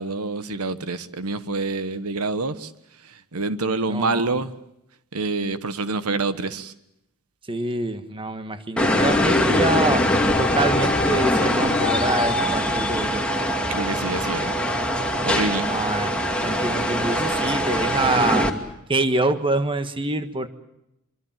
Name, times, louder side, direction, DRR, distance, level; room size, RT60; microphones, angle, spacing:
voice 1, 0.0-2.7 3.0-4.5 5.1-6.7 13.7-14.5 15.2-15.7, right 3 dB, 90° right, 12 dB, 1.3 m, -27 dB
voice 2, 3.9-4.3 7.5-10.1 10.4-13.2 15.7-18.5 18.9-20.5, right 2 dB, 25° right, 9 dB, 1.5 m, -26 dB
sound 1, 8.8-18.5, left 1 dB, 5° left, 2.5 m, -22 dB
25.0 x 24.5 x 7.5 m, 0.82 s
head